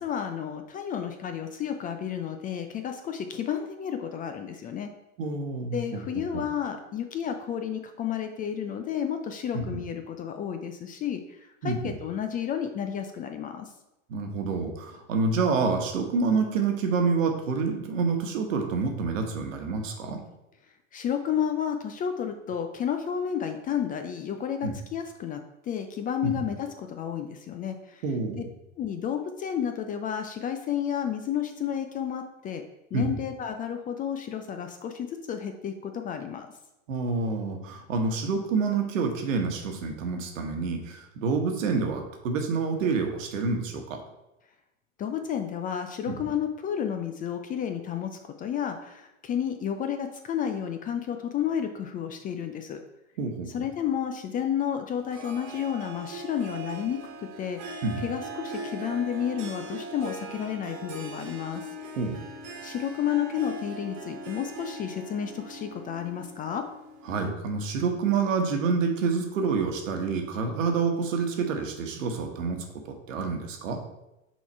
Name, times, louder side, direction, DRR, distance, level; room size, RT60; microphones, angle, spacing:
voice 1, 0.0-4.9 5.7-11.2 11.6-13.7 20.9-25.4 25.7-28.0 28.8-32.6 32.9-36.5 45.0-52.8 53.5-57.0 57.4-57.6 58.0-61.6 62.6-66.6, left 8 dB, 20° left, 6 dB, 0.4 m, -31 dB
voice 2, 5.2-6.4 9.5-9.8 11.6-11.9 14.1-20.2 24.6-24.7 26.2-26.5 28.0-28.4 32.9-33.2 36.9-44.0 46.1-46.3 53.2-53.5 57.8-58.0 62.0-62.2 67.1-72.6 72.8-73.8, right 4 dB, 75° right, 4 dB, 1.3 m, -28 dB
Harp, 55.1-67.3, right 3 dB, 45° right, 1.4 m, -41 dB
6.0 x 3.7 x 4.5 m, 0.92 s
hypercardioid pair, 100°, 39 cm